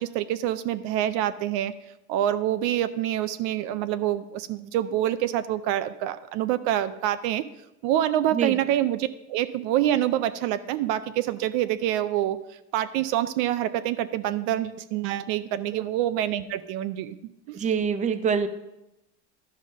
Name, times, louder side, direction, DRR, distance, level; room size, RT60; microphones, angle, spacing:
voice 1, 0.0-1.7 2.1-7.5 7.8-17.2 17.5-17.6, right 12 dB, 65° right, 12 dB, 0.5 m, -26 dB
voice 2, 17.5-18.5, right 6 dB, 20° right, 10 dB, 0.6 m, -25 dB
12.0 x 5.2 x 5.2 m, 0.92 s
supercardioid pair, 115°, 33 cm